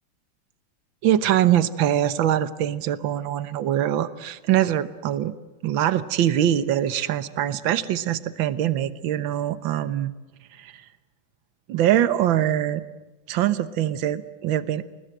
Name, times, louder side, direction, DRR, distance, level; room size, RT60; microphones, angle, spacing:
voice 1, 1.0-5.3 5.6-10.1 10.6-10.7 11.7-12.8 13.3-14.9, right 11 dB, 70° right, 13 dB, 1.8 m, -23 dB
29.5 x 20.0 x 7.8 m, 1.1 s
omnidirectional pair, 2.3 m